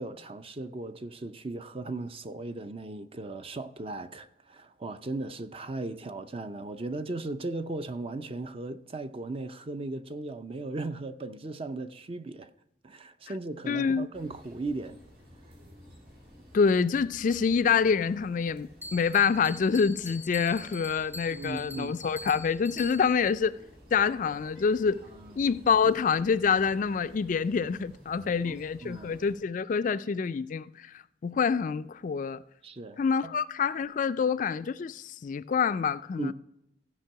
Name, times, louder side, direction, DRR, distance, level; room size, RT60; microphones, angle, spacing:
voice 1, 0.0-12.5 12.8-15.0 21.3-22.0 25.2-25.4 28.4-28.6 28.8-29.2 32.6-33.3 36.2-36.3, right 2 dB, 35° right, 0.5 m, -37 dB
voice 2, 13.6-14.1 16.5-23.6 23.9-25.0 25.4-32.4 33.0-36.3, left 6 dB, 45° left, 0.3 m, -26 dB
sound 1, 14.1-29.4, left 1 dB, 65° right, 3.7 m, -53 dB
Bell, 18.8-23.3, left 1 dB, 10° right, 0.9 m, -44 dB
15.0 x 5.3 x 5.8 m
head